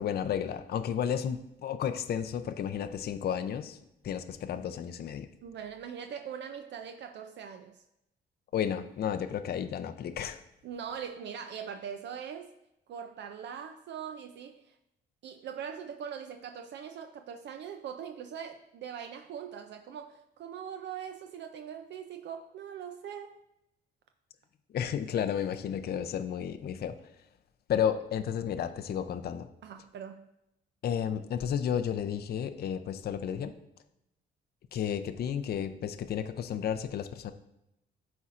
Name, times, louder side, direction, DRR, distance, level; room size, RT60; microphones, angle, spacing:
voice 1, 0.0-3.8 4.0-5.3 8.5-10.4 24.7-27.0 27.7-29.5 30.8-33.5 34.7-37.3, left 8 dB, 55° left, 9 dB, 0.5 m, -32 dB
voice 2, 5.4-7.8 10.6-12.5 12.9-14.6 15.2-23.4 29.6-30.3, right 8 dB, 65° right, 6 dB, 0.4 m, -41 dB
12.5 x 4.2 x 2.5 m, 0.85 s
cardioid pair, 90°, 20 cm